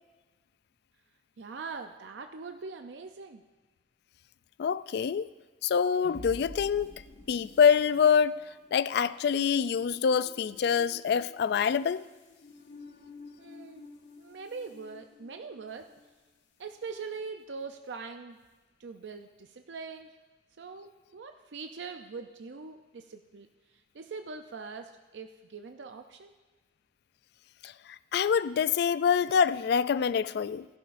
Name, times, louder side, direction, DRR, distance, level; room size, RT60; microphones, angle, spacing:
voice 1, 1.4-3.4 13.4-13.9 14.2-15.9 16.6-18.4 18.8-20.1 20.6-26.3, right 4 dB, 85° right, 0.5 m, -42 dB
voice 2, 4.6-5.3 5.6-6.9 7.3-8.4 8.7-12.0 27.6-30.7, left 7 dB, 65° left, 0.3 m, -26 dB
sound 1, 5.6-16.2, left 2 dB, 85° left, 1.6 m, -51 dB
16.5 x 12.0 x 2.5 m
head